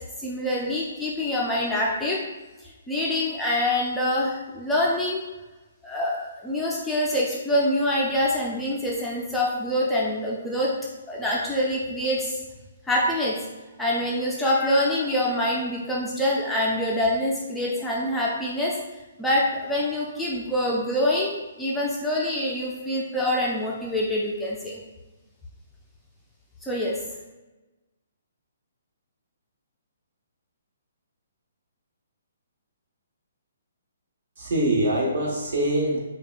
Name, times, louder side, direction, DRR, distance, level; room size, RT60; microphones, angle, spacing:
voice 1, 0.2-2.2 2.9-5.2 5.8-10.7 11.1-12.4 12.9-13.4 13.8-18.8 19.2-21.3 21.6-24.8 26.6-27.0, left 1 dB, 5° left, -5 dB, 0.3 m, -25 dB
voice 2, 34.4-36.0, right 1 dB, 60° right, -3 dB, 1.2 m, -24 dB
5.2 x 2.2 x 2.4 m, 1.1 s
hypercardioid pair, 165°, 0 cm